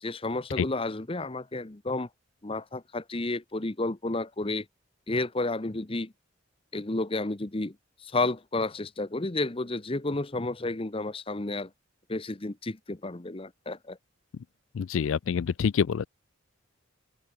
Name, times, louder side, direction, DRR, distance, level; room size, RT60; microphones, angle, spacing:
voice 1, 0.0-2.1 2.4-4.7 5.1-6.1 6.7-7.7 8.0-11.7 12.1-14.0, left 2 dB, 25° left, 0.8 m, -31 dB
voice 2, 14.7-16.1, left 6 dB, 65° left, 0.4 m, -26 dB
open air
head